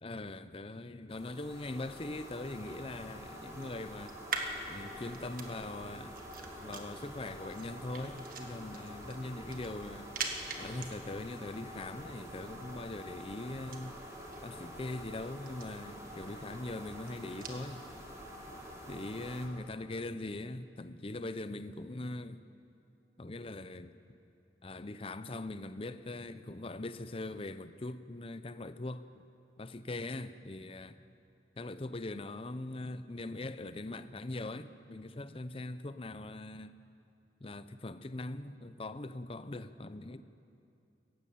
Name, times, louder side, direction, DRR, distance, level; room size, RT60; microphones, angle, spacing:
voice 1, 0.0-4.2 4.7-6.2 6.6-10.1 10.6-14.0 14.4-17.9 18.9-22.5 23.2-24.0 24.6-29.2 29.6-31.0 31.5-36.8 37.4-40.2, left 2 dB, 30° left, 0.7 m, -41 dB
sound 1, 1.1-19.5, equal, 20° right, 3.1 m, -47 dB
sound 2, 1.8-17.6, right 4 dB, 50° right, 1.7 m, -46 dB
19.5 x 15.0 x 9.2 m
head